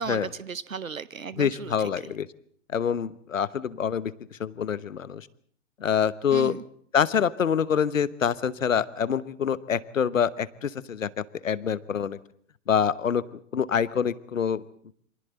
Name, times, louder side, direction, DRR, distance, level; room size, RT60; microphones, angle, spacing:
voice 1, 0.0-1.9 6.3-6.6, right 6 dB, 90° right, 17 dB, 0.8 m, -35 dB
voice 2, 1.4-2.3 2.7-4.1 4.4-5.3 5.8-6.6 6.9-12.2 12.7-14.6, left 7 dB, 75° left, 18 dB, 1.0 m, -26 dB
28.0 x 24.5 x 4.0 m, 0.62 s
figure-of-eight pair, 100°, 39 cm